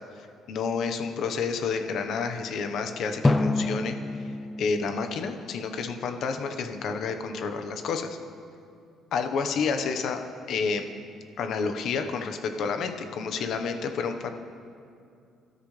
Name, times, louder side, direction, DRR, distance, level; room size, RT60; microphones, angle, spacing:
voice 1, 0.5-4.3 4.6-8.2 9.1-10.9 11.4-14.3, left 5 dB, 60° left, 6 dB, 1.2 m, -30 dB
Drum, 3.2-6.1, left 2 dB, 15° left, 0.5 m, -28 dB
24.5 x 12.5 x 3.4 m, 2.5 s
cardioid pair, 130°, 0 cm